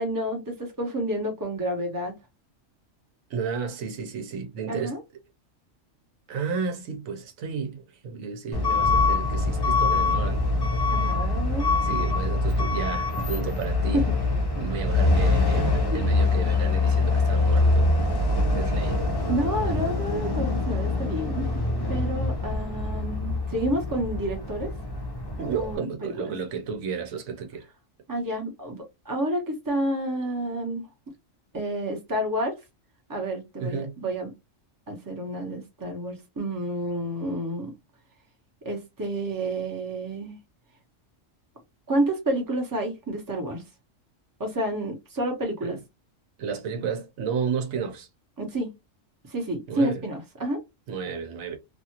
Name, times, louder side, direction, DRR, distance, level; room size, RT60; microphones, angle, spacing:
voice 1, 0.0-2.1 4.7-5.0 10.9-11.7 13.9-14.1 19.3-21.5 21.9-24.7 25.5-26.3 28.1-30.9 31.5-32.5 33.1-34.3 34.9-37.7 38.6-40.4 41.9-43.6 44.4-45.8 48.4-48.7 49.3-50.6, right 1 dB, 15° right, 0.9 m, -29 dB
voice 2, 3.3-4.9 6.3-10.4 10.9-11.2 11.8-14.0 14.5-17.9 18.6-19.0 25.4-27.7 33.6-34.0 45.6-45.8 46.4-48.1 49.7-50.0 50.9-51.6, right 6 dB, 85° right, 1.1 m, -32 dB
Truck / Alarm, 8.5-25.8, left 3 dB, 25° left, 0.5 m, -24 dB
2.7 x 2.4 x 2.8 m
omnidirectional pair, 1.3 m